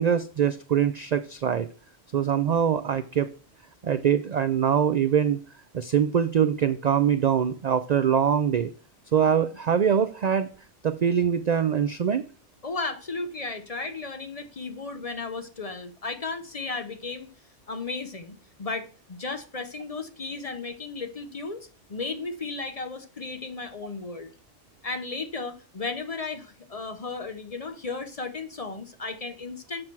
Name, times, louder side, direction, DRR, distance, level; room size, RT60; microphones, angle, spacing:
voice 1, 0.0-1.7 2.1-3.3 3.8-5.4 5.7-8.7 9.1-10.5 10.8-12.3, right 8 dB, 65° right, 12 dB, 0.4 m, -23 dB
voice 2, 12.6-17.3 17.7-24.3 24.8-29.8, left 3 dB, 35° left, 8 dB, 0.7 m, -34 dB
7.8 x 5.9 x 4.5 m, 0.38 s
omnidirectional pair, 1.2 m